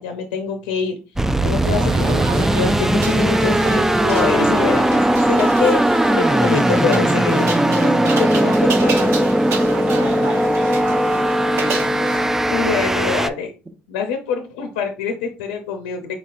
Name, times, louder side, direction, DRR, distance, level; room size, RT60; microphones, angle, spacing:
voice 1, 0.0-5.8 6.1-9.3 12.5-13.5 13.9-16.2, left 6 dB, 90° left, 5 dB, 0.6 m, -25 dB
sound 1, 1.2-13.3, right 1 dB, 10° right, 0.4 m, -18 dB
sound 2, 1.6-12.3, right 5 dB, 65° right, 0.9 m, -30 dB
voice 2, 9.8-12.2, right 2 dB, 25° right, 5 dB, 1.0 m, -35 dB
4.4 x 4.1 x 2.4 m, 0.33 s
hypercardioid pair, 65°, 5 cm